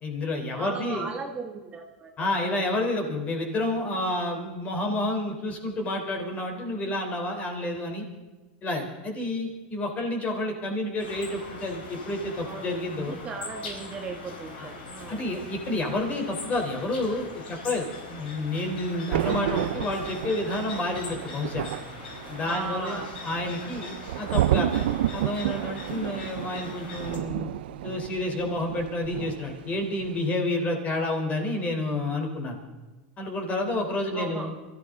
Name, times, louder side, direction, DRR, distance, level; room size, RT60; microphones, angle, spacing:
voice 1, 0.0-1.1 2.2-8.0 8.6-13.2 14.6-14.7 15.1-21.7 22.3-24.8 25.1-27.5 27.8-32.6 33.2-34.5, left 2 dB, 25° left, 3 dB, 3.9 m, -29 dB
voice 2, 0.6-2.6 12.4-15.2 22.4-23.1 34.1-34.5, right 4 dB, 20° right, 2 dB, 1.7 m, -37 dB
sound 1, 11.0-27.2, left 3 dB, 80° left, 4.9 m, -41 dB
Thunder, 19.1-29.7 30.0-30.3, right 13 dB, 75° right, 0.5 m, -31 dB
24.0 x 14.0 x 3.9 m, 1.2 s
supercardioid pair, 125°, 5 cm